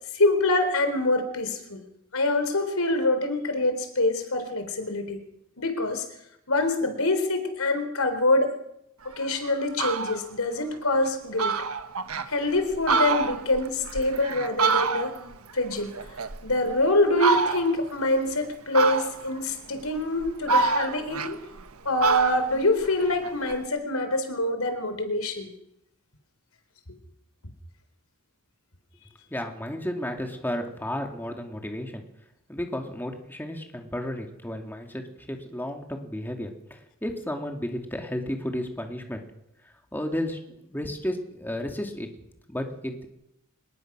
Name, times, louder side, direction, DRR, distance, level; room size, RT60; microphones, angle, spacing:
voice 1, 0.1-1.8 2.1-5.2 5.6-6.1 6.5-8.5 9.2-11.5 12.3-15.2 15.5-15.9 16.4-21.4 21.8-25.5, left 2 dB, 80° left, 8 dB, 3.9 m, -25 dB
Fowl, 9.1-9.3 9.6-10.2 10.7-10.8 11.1-11.2 11.4-12.3 12.7-15.3 15.7-16.7 17.2-17.8 18.7-19.4 20.0-21.7 22.0-23.6, right 4 dB, 85° right, 1.4 m, -27 dB
voice 2, 29.3-32.0 32.5-39.2 39.9-42.1 42.5-43.1, left 1 dB, 10° left, 3 dB, 2.6 m, -33 dB
25.5 x 21.0 x 6.2 m, 0.80 s
head